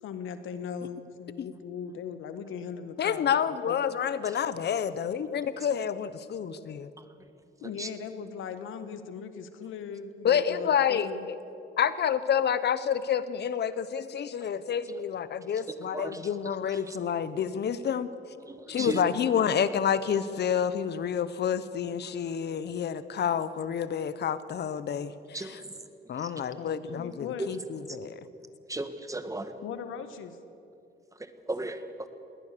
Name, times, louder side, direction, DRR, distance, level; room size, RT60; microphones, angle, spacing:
voice 1, 0.0-3.8 7.6-11.3 18.7-19.3 26.6-27.5 29.6-30.4, left 7 dB, 85° left, 10 dB, 1.5 m, -39 dB
voice 2, 3.0-6.9 10.2-11.4 11.8-18.1 18.7-25.1 25.4-25.6 26.1-28.2, left 8 dB, 55° left, 14 dB, 1.1 m, -29 dB
voice 3, 18.5-19.0 25.3-25.7 26.2-26.3 27.4-27.5 28.7-29.5 31.2-32.1, right 2 dB, 15° right, 9 dB, 1.7 m, -36 dB
21.5 x 18.5 x 6.9 m, 2.8 s
cardioid pair, 90°, 20 cm